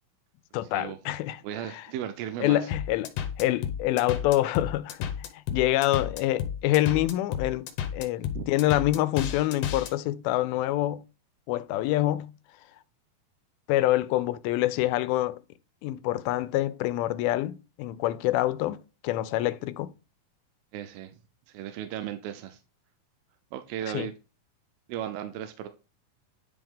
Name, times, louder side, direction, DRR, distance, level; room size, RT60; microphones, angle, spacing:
voice 1, 0.5-1.4 1.7-1.8 2.4-3.1 3.4-7.7 7.9-11.0 11.5-12.3 13.7-15.4 15.8-18.8 19.0-19.9 23.9-24.1, left 15 dB, 90° left, 2.4 m, -26 dB
voice 2, 1.4-2.7 8.3-8.5 20.7-21.2 21.5-22.6 23.5-24.1 24.9-25.7, right 10 dB, 85° right, 2.5 m, -35 dB
sound 1, 2.7-9.9, left 8 dB, 70° left, 2.2 m, -32 dB
10.0 x 3.4 x 3.6 m
omnidirectional pair, 4.2 m